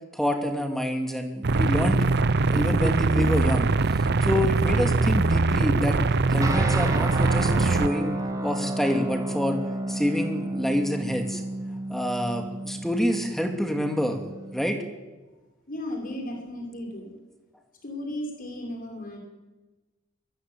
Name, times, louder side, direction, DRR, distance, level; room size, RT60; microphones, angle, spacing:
voice 1, 0.1-2.0 2.5-3.7 4.2-6.0 6.3-8.2 8.4-9.6 9.9-11.4 11.9-14.2 14.5-14.8, equal, ahead, 4 dB, 2.6 m, -27 dB
sound 1, 1.4-7.9, right 3 dB, 55° right, 0.7 m, -22 dB
sound 2, 6.4-14.7, right 1 dB, 20° right, 2.9 m, -32 dB
voice 2, 15.7-17.2 17.8-19.2, left 1 dB, 45° left, 2 dB, 6.5 m, -35 dB
22.5 x 22.5 x 9.4 m, 1.2 s
head